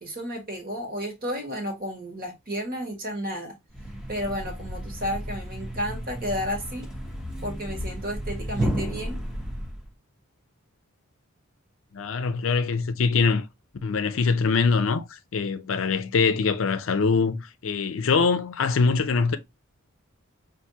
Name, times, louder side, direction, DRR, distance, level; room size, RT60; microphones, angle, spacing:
voice 1, 0.0-3.5 4.1-6.9 7.4-9.2, equal, 45° right, 1.4 m, -32 dB
Thump thud, 3.7-9.9, equal, 5° right, 0.7 m, -33 dB
voice 2, 11.9-13.5 13.8-19.4, left 4 dB, 65° left, 0.5 m, -23 dB
5.8 x 2.6 x 2.7 m
head